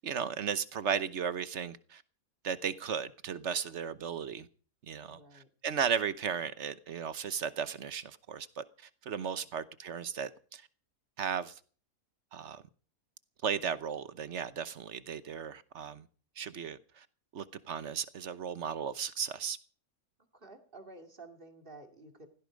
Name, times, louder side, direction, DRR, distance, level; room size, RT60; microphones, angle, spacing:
voice 1, 0.0-2.0 2.4-4.5 4.9-10.6 11.2-11.6 12.3-12.6 13.4-16.1 16.4-17.1 17.3-19.6, right 7 dB, 55° right, 1.2 m, -35 dB
voice 2, 5.1-5.5 20.3-22.3, right 2 dB, 40° right, 2.6 m, -51 dB
16.5 x 14.0 x 5.1 m
omnidirectional pair, 1.5 m